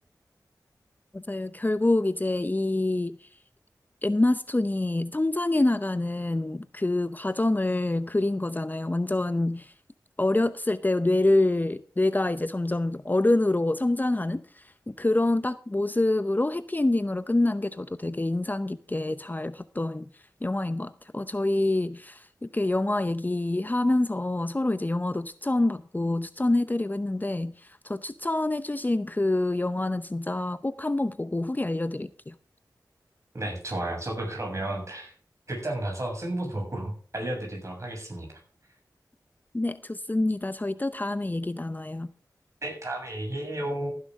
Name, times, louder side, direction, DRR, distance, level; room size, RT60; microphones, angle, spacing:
voice 1, 1.1-3.3 4.0-9.7 10.2-20.1 20.4-32.3 39.5-42.1, left 2 dB, 25° left, 0.7 m, -26 dB
voice 2, 33.3-35.1 35.5-38.4 42.6-43.9, right 1 dB, 45° right, 7.2 m, -32 dB
15.5 x 10.5 x 3.6 m
wide cardioid pair, 55°, 7 cm